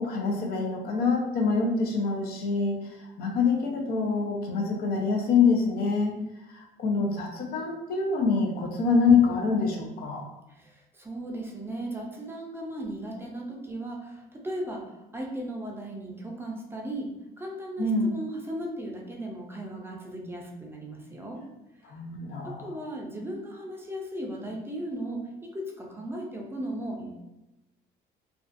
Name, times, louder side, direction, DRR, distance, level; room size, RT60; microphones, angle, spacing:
voice 1, 0.0-6.1 6.5-10.2 17.8-18.1 21.8-22.8, left 4 dB, 65° left, 1 dB, 0.6 m, -25 dB
voice 2, 10.5-21.4 21.9-22.0 22.4-27.2, right 1 dB, 15° right, -1 dB, 0.5 m, -37 dB
2.4 x 2.3 x 2.5 m, 0.96 s
cardioid pair, 110°, 17 cm